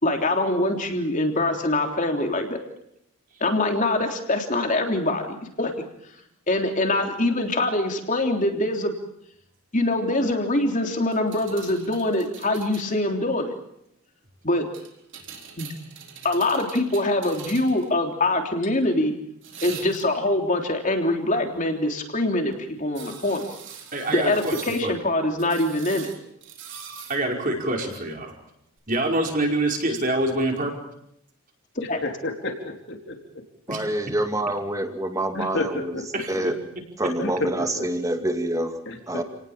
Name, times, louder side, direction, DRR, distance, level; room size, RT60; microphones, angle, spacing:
voice 1, 0.0-2.6 3.4-5.7 6.5-9.0 9.7-13.5 14.4-14.7 15.6-15.7 16.2-19.1 19.6-23.5 24.1-26.1 31.9-32.0, left 2 dB, 35° left, 4 dB, 3.4 m, -24 dB
sound 1, 11.1-12.9 14.7-17.9 19.4-20.3 23.0-24.9 25.4-27.2 28.8-28.9, right 7 dB, 55° right, 4.1 m, -42 dB
voice 2, 23.9-24.6 24.8-24.9 27.1-28.3 28.9-30.8 33.7-33.8 36.1-36.5, right 1 dB, 35° right, 1 dB, 5.2 m, -25 dB
voice 3, 32.0-33.2 35.3-35.7 35.9-36.0 36.3-36.4 37.2-37.3 37.8-37.9 38.9-39.0, left 2 dB, 55° left, 3 dB, 3.9 m, -30 dB
voice 4, 33.7-36.0 36.3-36.6 37.0-38.8 39.1-39.2, right 1 dB, 15° right, 6 dB, 2.3 m, -26 dB
30.0 x 19.0 x 7.4 m, 0.75 s
head